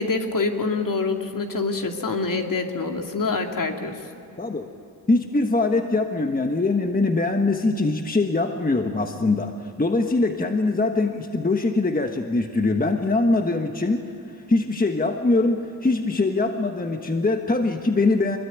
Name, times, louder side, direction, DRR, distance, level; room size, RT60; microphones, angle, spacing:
voice 1, 0.0-4.0, left 3 dB, 50° left, 3 dB, 2.6 m, -26 dB
voice 2, 4.4-4.7 5.1-9.5 9.8-14.1 14.5-18.4, left 3 dB, 20° left, 4 dB, 1.4 m, -22 dB
25.0 x 22.0 x 9.2 m, 2.8 s
wide cardioid pair, 90°, 41 cm